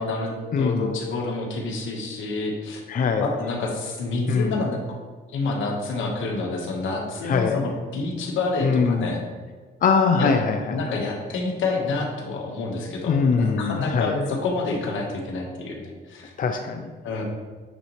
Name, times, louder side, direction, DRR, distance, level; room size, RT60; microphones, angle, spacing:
voice 1, 0.0-2.8 3.2-4.8 5.3-9.2 10.2-10.3 10.7-16.3 17.0-17.2, left 3 dB, 80° left, 1 dB, 1.3 m, -28 dB
voice 2, 0.5-0.9 2.9-3.3 4.3-4.7 7.2-7.6 8.6-9.2 9.8-11.0 13.1-14.1 16.4-16.9, left 5 dB, 45° left, 5 dB, 0.5 m, -22 dB
8.8 x 4.0 x 3.2 m, 1.4 s
cardioid pair, 90°, 20 cm